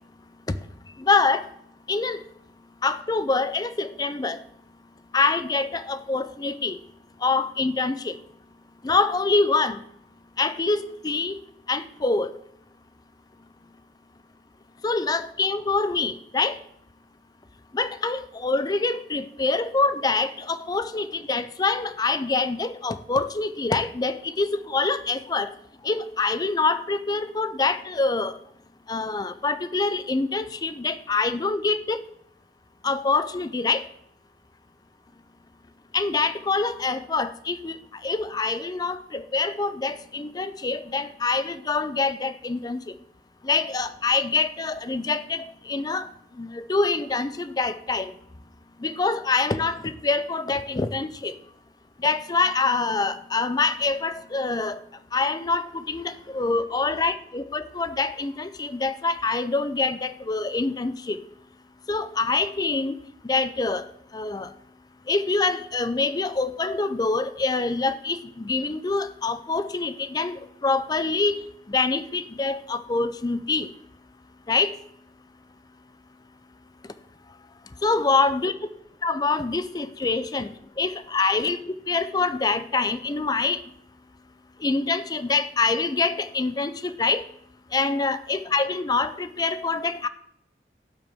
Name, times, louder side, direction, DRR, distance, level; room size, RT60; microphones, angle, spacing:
voice 1, 1.0-1.5 1.9-2.2 2.8-4.4 5.1-6.8 7.2-8.1 8.8-9.8 10.4-11.4 11.7-12.3 14.8-16.6 17.7-25.5 25.8-28.4 28.9-32.0 32.8-33.8 35.9-37.8 38.0-42.8 43.4-46.1 46.4-48.1 48.8-51.3 52.0-54.8 55.1-61.2 61.9-62.9 63.2-63.9 64.1-64.5 65.1-73.7 74.5-74.7 77.8-78.5 79.0-81.6 81.9-83.6 84.6-87.2 87.7-90.1, left 3 dB, 20° left, 13 dB, 0.4 m, -25 dB
12.0 x 7.3 x 3.5 m, 0.76 s
head